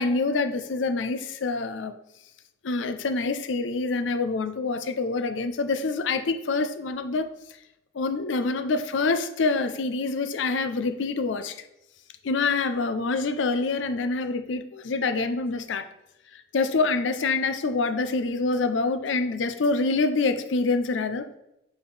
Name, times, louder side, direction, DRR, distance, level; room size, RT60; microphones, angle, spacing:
voice 1, 0.0-2.0 2.6-7.3 7.9-11.6 12.2-15.9 16.3-21.4, left 3 dB, 80° left, 9 dB, 0.5 m, -26 dB
7.0 x 4.2 x 3.3 m, 0.86 s
head